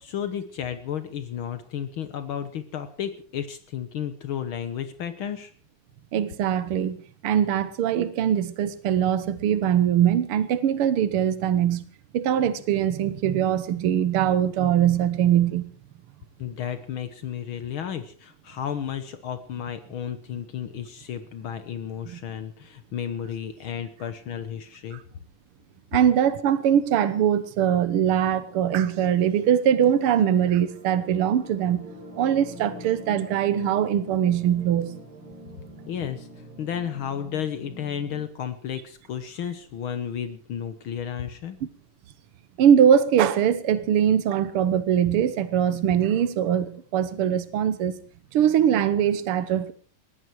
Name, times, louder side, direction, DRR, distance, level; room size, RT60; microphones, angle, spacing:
voice 1, 0.0-5.5 16.4-25.0 35.9-41.6, left 9 dB, 90° left, 1.1 m, -33 dB
voice 2, 6.1-7.0 7.2-11.8 12.1-15.7 22.1-22.2 24.9-25.0 25.9-31.9 32.2-35.0 42.6-47.9 48.3-49.7, right 9 dB, 85° right, 1.2 m, -22 dB
sound 1, 28.1-38.2, right 1 dB, 65° right, 6.2 m, -45 dB
20.5 x 15.0 x 4.7 m
omnidirectional pair, 4.0 m